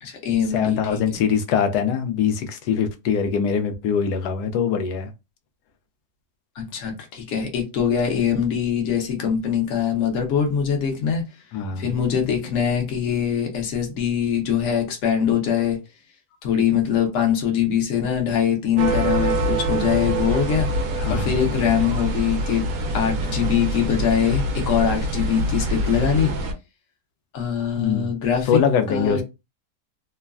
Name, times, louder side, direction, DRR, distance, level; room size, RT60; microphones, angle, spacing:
voice 1, 0.0-1.2 6.6-11.2 11.8-15.8 16.4-20.7 21.1-22.6 22.9-26.3 27.3-28.6 28.9-29.2, left 8 dB, 55° left, 1.0 m, -23 dB
voice 2, 0.5-5.1 11.5-11.9 21.0-21.3 27.8-28.1 28.5-29.2, left 7 dB, 75° left, 1.1 m, -22 dB
sound 1, 18.8-26.5, right 1 dB, 70° right, 0.9 m, -25 dB
3.1 x 2.1 x 2.3 m
omnidirectional pair, 1.8 m